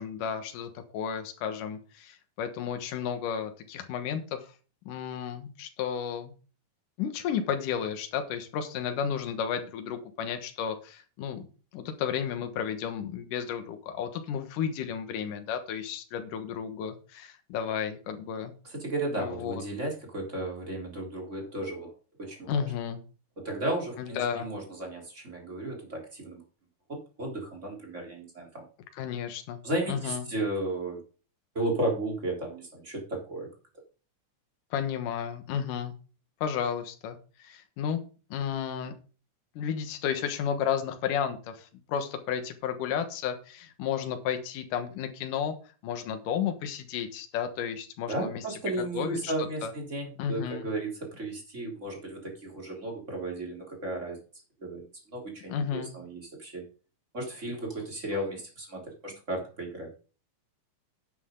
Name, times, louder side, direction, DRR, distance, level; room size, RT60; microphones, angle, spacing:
voice 1, 0.0-4.5 4.9-6.3 7.0-11.5 11.7-18.5 19.2-19.6 22.5-23.0 24.0-24.5 28.9-29.6 29.9-30.3 34.7-35.9 36.4-38.0 38.3-38.9 39.6-45.5 45.8-48.6 48.9-49.3 49.6-49.7 50.2-50.7 55.5-55.9, left 8 dB, 80° left, 7 dB, 2.9 m, -32 dB
voice 2, 18.6-21.9 22.2-22.7 23.4-26.4 26.9-28.6 29.6-31.0 31.6-33.5 48.1-54.2 54.6-56.6 57.1-59.9, right 2 dB, 20° right, 0 dB, 3.7 m, -34 dB
10.5 x 8.9 x 3.8 m, 0.36 s
omnidirectional pair, 3.7 m